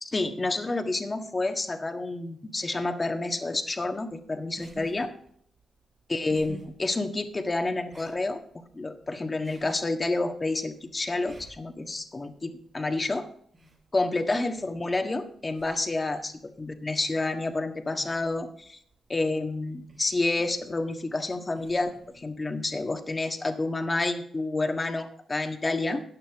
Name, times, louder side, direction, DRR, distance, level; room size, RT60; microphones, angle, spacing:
voice 1, 0.0-5.1 6.1-8.4 8.7-13.3 13.9-18.8 19.1-26.0, left 2 dB, 30° left, 5 dB, 1.5 m, -29 dB
sound 1, 3.5-23.2, right 2 dB, 45° right, 4.5 m, -54 dB
14.0 x 9.1 x 3.6 m, 0.64 s
cardioid pair, 65°, 0 cm